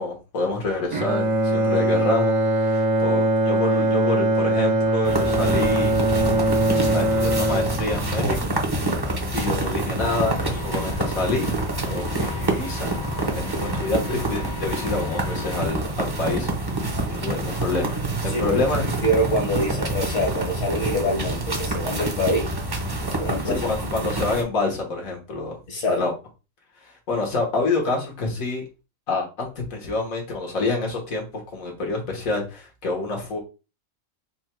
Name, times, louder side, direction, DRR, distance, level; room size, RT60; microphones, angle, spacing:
voice 1, 0.0-6.0 6.9-8.5 9.3-11.5 11.9-12.9 13.3-16.5 16.8-18.8 23.2-25.6 25.9-26.1 26.8-28.6 29.1-33.4, left 3 dB, 85° left, 0 dB, 1.8 m, -27 dB
Bowed string instrument, 0.9-9.1, right 1 dB, 70° right, 1.3 m, -22 dB
sound 1, 5.0-24.4, right 2 dB, 25° right, 0.7 m, -27 dB
Vehicle, 10.0-15.7, left 4 dB, 45° left, 0.6 m, -36 dB
voice 2, 18.3-18.6 19.0-22.5 23.2-23.6 25.7-26.0, equal, 70° left, 0 dB, 1.5 m, -25 dB
4.4 x 2.2 x 4.4 m, 0.31 s
omnidirectional pair, 1.4 m